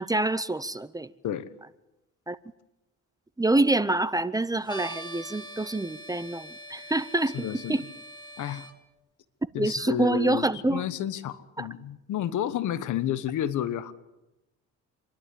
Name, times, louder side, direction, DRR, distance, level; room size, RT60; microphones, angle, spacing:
voice 1, 0.0-1.1 2.3-2.4 3.4-7.8 9.6-10.8 11.6-11.7, right 2 dB, 10° right, 16 dB, 0.7 m, -26 dB
sound 1, 4.7-8.7, right 1 dB, 15° left, 2.3 m, -43 dB
voice 2, 7.3-7.8 8.4-8.7 9.5-13.9, left 10 dB, 80° left, 14 dB, 1.3 m, -31 dB
27.5 x 11.5 x 8.5 m, 0.97 s
cardioid pair, 90°, 30 cm